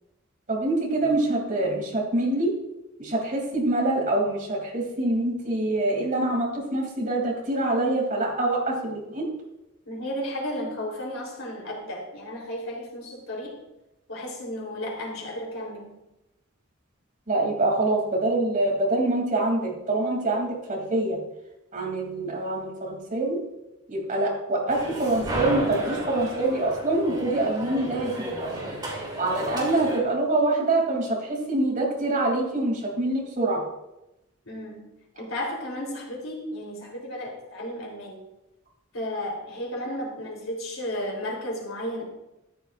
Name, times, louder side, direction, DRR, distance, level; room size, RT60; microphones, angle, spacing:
voice 1, 0.5-2.5 3.0-9.3 17.3-21.2 21.7-23.4 23.9-28.1 28.4-28.7 29.2-33.6, right 2 dB, 40° right, -2 dB, 3.1 m, -25 dB
voice 2, 9.9-13.6 14.1-16.0 34.5-34.9 35.2-38.3 38.9-42.0, left 1 dB, 75° left, -2 dB, 3.8 m, -33 dB
sound 1, 24.7-30.0, equal, 20° right, 3.2 m, -32 dB
14.0 x 11.0 x 2.6 m, 0.93 s
head